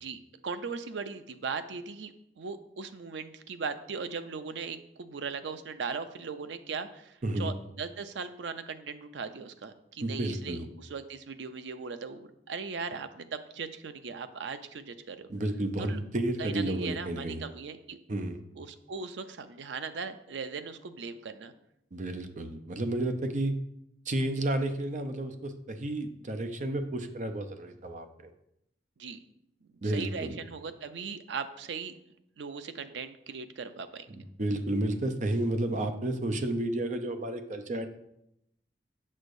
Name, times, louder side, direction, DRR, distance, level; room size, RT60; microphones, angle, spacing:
voice 1, 0.0-15.3 15.8-16.0 16.4-18.0 18.6-21.5 29.0-29.2 29.8-31.9 32.4-34.1, right 5 dB, 85° right, 10 dB, 0.5 m, -39 dB
voice 2, 10.0-10.6 15.3-17.4 18.1-18.4 21.9-23.5 24.1-28.1 29.8-30.4 34.1-37.9, right 1 dB, 45° right, 7 dB, 0.6 m, -31 dB
7.2 x 6.4 x 2.6 m, 0.79 s
head